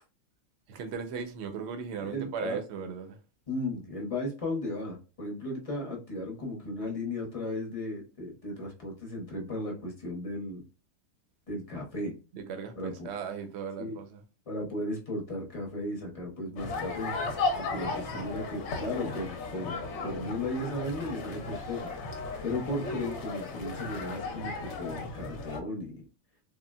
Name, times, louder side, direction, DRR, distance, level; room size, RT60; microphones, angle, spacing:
voice 1, 0.7-3.2 12.3-14.2, right 6 dB, 60° right, 0.8 m, -37 dB
voice 2, 2.0-2.6 3.5-10.6 11.5-12.1 12.7-13.1 13.8-14.0 14.5-17.1 17.6-21.9 22.4-26.0, left 1 dB, 30° left, 0.8 m, -35 dB
sound 1, 16.6-25.6, left 3 dB, 65° left, 0.9 m, -35 dB
3.6 x 2.1 x 2.3 m
omnidirectional pair, 1.4 m